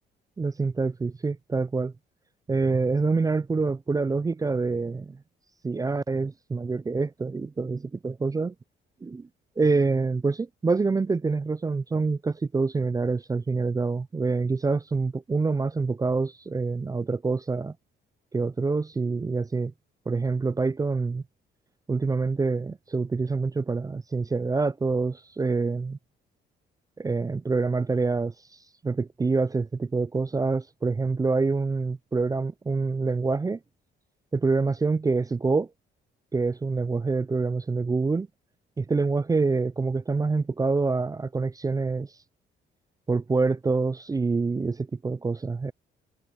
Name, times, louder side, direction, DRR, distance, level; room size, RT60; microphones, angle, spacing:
voice 1, 0.4-1.9 2.5-5.2 5.6-8.5 9.0-9.3 9.6-17.7 18.3-19.7 20.1-21.2 21.9-26.0 27.0-28.3 28.8-33.6 34.3-35.7 36.3-38.3 38.8-42.1 43.1-45.7, right 4 dB, 20° right, 0.3 m, -26 dB
cardioid pair, 90°, 20 cm